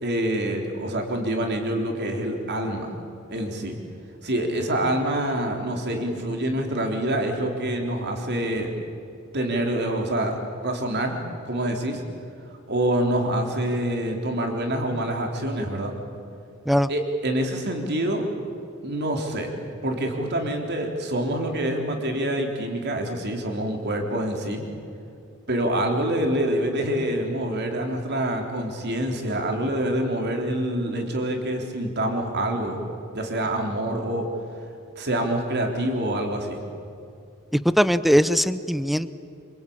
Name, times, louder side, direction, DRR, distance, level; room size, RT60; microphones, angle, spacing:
voice 1, 0.0-2.9 3.3-3.8 4.2-8.7 9.3-10.4 10.6-11.2 11.4-12.0 12.7-15.9 16.9-18.2 18.8-19.5 19.8-24.6 25.5-32.8 33.1-34.3 35.0-36.6, right 1 dB, 50° right, 3 dB, 3.8 m, -26 dB
voice 2, 37.5-39.1, equal, ahead, 14 dB, 0.7 m, -20 dB
27.0 x 25.5 x 8.7 m, 2.6 s
head